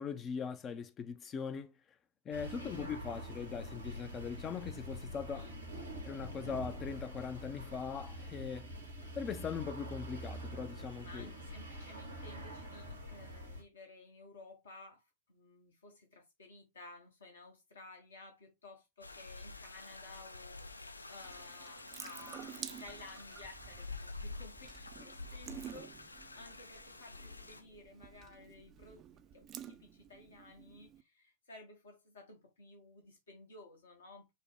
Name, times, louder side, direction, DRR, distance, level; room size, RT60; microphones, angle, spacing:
voice 1, 0.0-1.7 2.2-5.5 6.0-8.7 9.1-11.3, left 6 dB, 25° left, 0.4 m, -41 dB
sound 1, 2.3-13.6, equal, 85° right, 1.3 m, -45 dB
voice 2, 2.6-2.9 5.3-5.5 11.0-15.0 15.3-29.0 29.3-34.3, left 2 dB, 65° left, 1.0 m, -55 dB
sound 2, 19.0-27.6, left 3 dB, 80° left, 0.6 m, -48 dB
Water tap faucet / Sink (filling or washing) / Drip, 21.2-31.0, right 9 dB, 30° right, 0.4 m, -51 dB
5.3 x 2.1 x 3.3 m
figure-of-eight pair, 90°, 0 cm